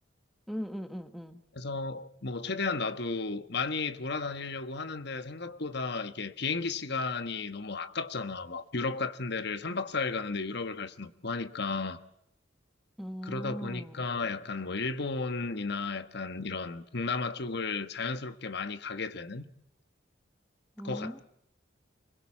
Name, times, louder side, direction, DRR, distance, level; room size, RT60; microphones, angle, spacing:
voice 1, 0.5-1.4 13.0-14.0 20.8-21.2, equal, ahead, 1.2 m, -39 dB
voice 2, 1.5-12.0 13.2-19.5 20.8-21.2, left 4 dB, 60° left, 1.3 m, -34 dB
24.0 x 21.5 x 7.3 m
head